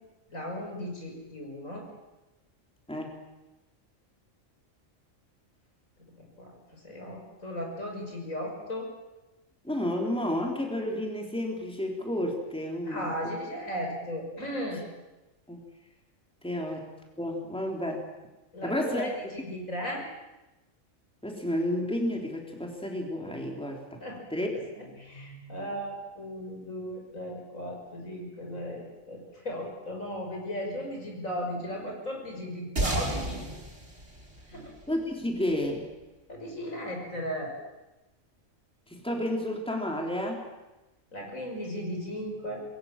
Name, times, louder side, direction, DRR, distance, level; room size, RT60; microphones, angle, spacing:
voice 1, 0.3-1.9 6.2-8.9 12.8-14.9 18.5-20.1 24.0-24.2 24.8-33.4 34.5-34.7 36.3-37.5 41.1-42.6, equal, 75° left, 1 dB, 6.5 m, -36 dB
voice 2, 9.6-13.3 15.5-15.6 16.4-16.9 17.2-18.1 18.6-19.0 21.2-24.0 24.3-24.6 34.9-35.9 38.9-40.5, left 1 dB, 5° left, 1 dB, 3.9 m, -31 dB
sound 1, 32.8-35.5, right 1 dB, 55° right, 4.9 m, -33 dB
26.5 x 22.0 x 7.5 m, 1.0 s
omnidirectional pair, 1.4 m